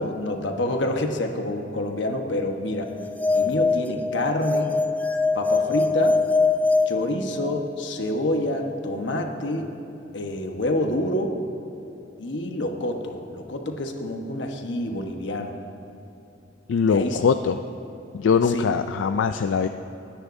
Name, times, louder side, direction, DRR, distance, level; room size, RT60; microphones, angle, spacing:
voice 1, 0.0-2.9 3.3-4.7 5.3-6.2 6.9-9.7 10.1-11.3 12.2-15.5 16.8-17.3 18.5-18.7, left 1 dB, 70° left, 3 dB, 1.1 m, -27 dB
sound 1, 3.0-7.8, left 3 dB, 10° left, 0.3 m, -23 dB
voice 2, 16.7-17.6 18.1-19.7, left 6 dB, 90° left, 8 dB, 0.4 m, -22 dB
29.0 x 9.9 x 2.6 m, 3.0 s
head